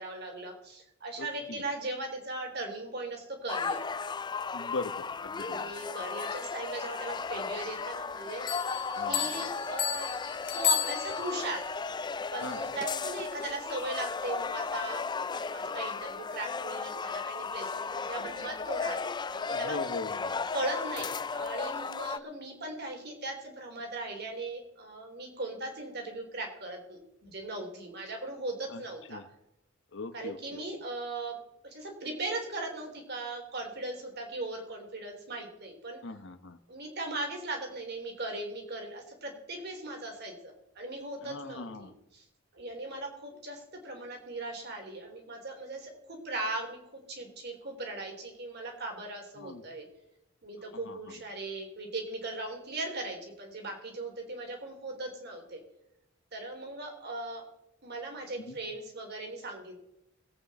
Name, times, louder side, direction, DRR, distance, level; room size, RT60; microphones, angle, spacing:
voice 1, 0.0-3.9 5.4-8.5 9.1-10.1 10.5-11.7 12.3-19.9 20.5-29.2 30.1-31.3 31.6-36.0 36.7-42.2 42.5-49.9 50.4-55.6 56.3-57.4 57.8-59.8, right 2 dB, 55° right, 2 dB, 3.5 m, -38 dB
voice 2, 1.2-1.6 4.5-5.7 8.8-9.4 12.4-12.6 19.5-20.4 28.7-28.8 29.1-29.2 29.9-30.6 36.0-36.6 41.2-41.9 49.4-49.6 50.8-51.0 58.4-58.6, left 3 dB, 65° left, 11 dB, 1.0 m, -40 dB
sound 1, 3.5-22.2, left 5 dB, 20° left, 0.4 m, -35 dB
Bell, 8.5-11.5, left 9 dB, 45° left, 1.7 m, -32 dB
21.5 x 8.6 x 4.3 m, 0.85 s
head